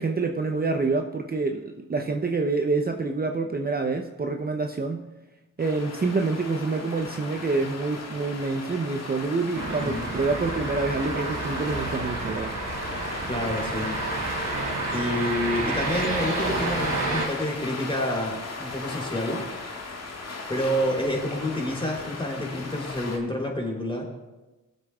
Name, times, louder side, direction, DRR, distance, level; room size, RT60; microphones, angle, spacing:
voice 1, 0.0-5.0 5.6-12.6, right 3 dB, 25° right, 4 dB, 0.7 m, -27 dB
sound 1, 5.6-23.2, left 3 dB, 50° left, 1.7 m, -37 dB
sound 2, 9.5-17.3, right 2 dB, 60° right, 2.8 m, -30 dB
voice 2, 9.8-10.1 13.3-14.0 14.9-19.4 20.5-24.1, left 1 dB, 15° left, -1 dB, 3.4 m, -28 dB
18.5 x 7.7 x 2.4 m, 1.1 s
supercardioid pair, 50°, 34 cm